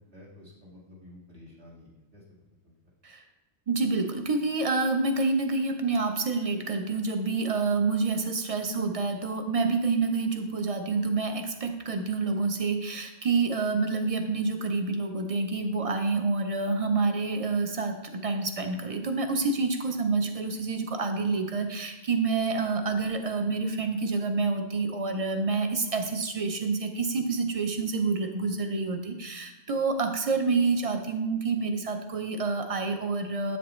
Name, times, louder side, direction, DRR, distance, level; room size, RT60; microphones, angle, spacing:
voice 1, 0.0-2.2 2.6-2.7, left 1 dB, 65° right, -6 dB, 2.6 m, -51 dB
voice 2, 3.7-33.6, right 4 dB, 35° right, 5 dB, 0.7 m, -28 dB
8.1 x 7.3 x 3.1 m, 0.99 s
omnidirectional pair, 1.2 m